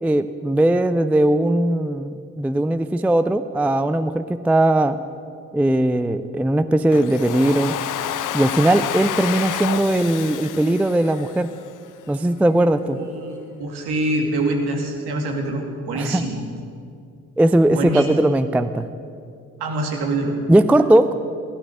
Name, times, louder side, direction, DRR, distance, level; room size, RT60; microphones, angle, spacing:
voice 1, 0.0-5.0 5.5-7.7 8.3-11.5 12.1-13.0 15.9-16.2 17.4-18.9 20.5-21.1, right 1 dB, 5° right, 12 dB, 0.4 m, -19 dB
Domestic sounds home sounds, 6.9-11.9, left 11 dB, 45° left, 0.8 m, -29 dB
voice 2, 12.8-16.4 17.7-18.1 19.6-20.4, right 2 dB, 60° right, 2 dB, 2.5 m, -25 dB
16.0 x 12.0 x 6.4 m, 2.4 s
figure-of-eight pair, 45°, 44 cm